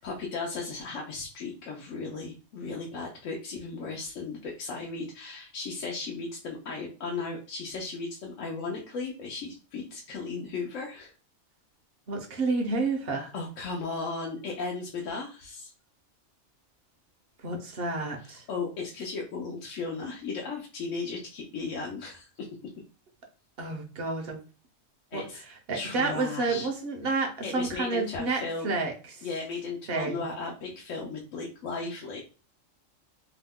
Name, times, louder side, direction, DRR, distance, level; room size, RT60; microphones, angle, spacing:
voice 1, 0.0-11.1 13.3-15.7 18.2-22.5 25.1-25.4 25.7-26.7 27.4-28.7 29.2-32.2, left 4 dB, 75° left, -1 dB, 1.0 m, -36 dB
voice 2, 12.1-13.3 17.4-18.4 23.6-24.4 25.1-25.2 25.7-29.3 29.9-30.2, right 3 dB, 55° right, 3 dB, 0.8 m, -30 dB
2.9 x 2.1 x 3.4 m, 0.36 s
omnidirectional pair, 1.3 m